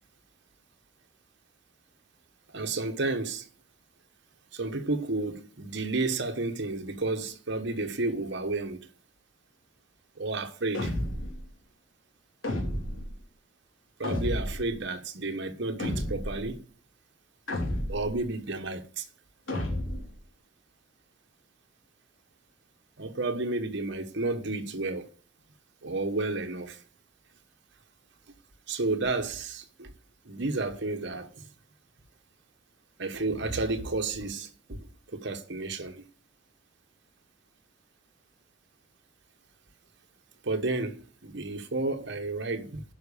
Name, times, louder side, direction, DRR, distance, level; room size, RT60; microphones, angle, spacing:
voice 1, 2.5-3.5 4.5-8.9 10.2-10.9 14.0-16.6 17.9-19.1 23.0-25.1 25.8-26.8 28.3-28.4 28.7-29.9 30.2-31.5 33.0-34.9 35.1-36.1 40.4-42.8, right 2 dB, 60° right, 1.4 m, -31 dB
sound 1, 10.7-11.4 12.4-13.1 14.0-14.7 15.8-16.4 17.5-18.2 19.5-20.1, left 1 dB, 85° left, 3.3 m, -31 dB
10.5 x 5.9 x 6.8 m
head